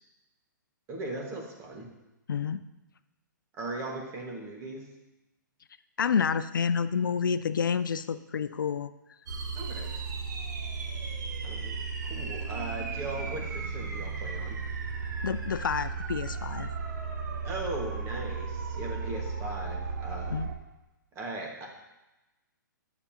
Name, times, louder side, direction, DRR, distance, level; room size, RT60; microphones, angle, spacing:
voice 1, 0.9-1.9 3.5-4.9 9.5-9.9 11.4-11.8 12.0-14.6 17.4-20.4 21.1-21.7, right 2 dB, 25° right, 0 dB, 1.6 m, -38 dB
voice 2, 2.3-2.6 6.0-8.9 15.2-16.7 20.3-20.5, left 6 dB, 80° left, 12 dB, 0.4 m, -29 dB
sound 1, 9.3-20.5, right 4 dB, 60° right, 1.2 m, -35 dB
9.8 x 6.8 x 2.9 m, 0.99 s
hypercardioid pair, 125°, 11 cm